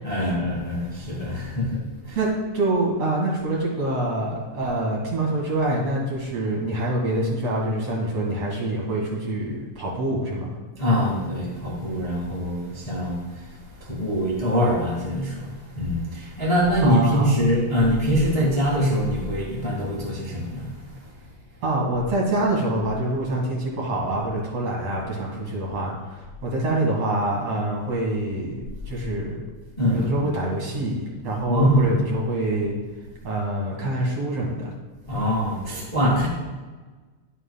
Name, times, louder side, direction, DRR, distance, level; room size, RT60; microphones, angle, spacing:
voice 1, 0.0-2.2 10.8-20.7 29.8-30.3 31.5-31.9 35.1-36.3, equal, 25° left, -5 dB, 0.8 m, -23 dB
voice 2, 2.5-10.6 16.8-17.3 21.6-29.5 29.9-32.8 33.2-34.6, right 1 dB, 55° right, -3 dB, 2.5 m, -26 dB
11.0 x 7.5 x 2.3 m, 1.3 s
omnidirectional pair, 3.7 m